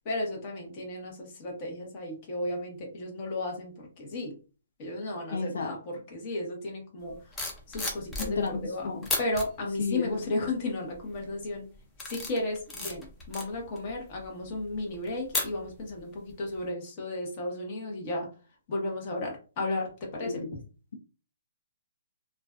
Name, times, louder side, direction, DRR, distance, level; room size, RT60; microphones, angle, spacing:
voice 1, 0.0-4.3 4.8-7.2 7.7-11.6 12.0-18.3 18.7-20.4, left 2 dB, 30° left, 0 dB, 0.9 m, -34 dB
voice 2, 5.3-5.7 8.3-9.1 9.8-10.2 20.2-20.5, left 4 dB, 75° left, 4 dB, 0.5 m, -32 dB
sound 1, 7.1-8.7 9.0-9.5 10.1-10.4 10.9-11.3 11.7-16.0 16.3-16.6, left 2 dB, 10° left, 0.5 m, -35 dB
2.4 x 2.2 x 2.4 m, 0.36 s
hypercardioid pair, 160°, 0 cm